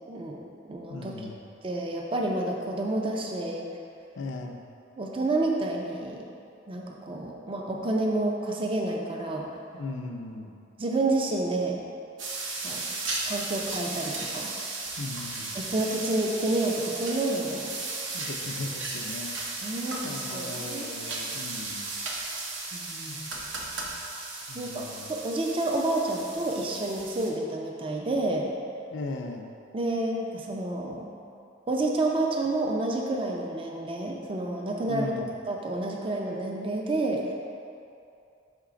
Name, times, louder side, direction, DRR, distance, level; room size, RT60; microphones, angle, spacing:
voice 1, 0.1-0.4 0.7-1.3 1.6-3.6 5.0-6.2 6.7-9.5 10.8-11.8 12.6-12.8 13.3-14.5 15.5-17.7 19.6-21.0 22.7-23.3 24.5-28.5 29.7-31.1 31.7-37.3, right 2 dB, 30° right, 0 dB, 0.4 m, -29 dB
voice 2, 0.9-1.4 4.2-4.6 9.8-10.5 15.0-15.6 18.1-19.4 20.0-21.8 23.1-23.2 24.5-25.1 28.9-29.5 34.9-35.3, left 3 dB, 70° left, 3 dB, 0.5 m, -37 dB
sound 1, 12.2-27.3, right 3 dB, 70° right, 0.8 m, -35 dB
5.9 x 3.2 x 4.9 m, 2.6 s
head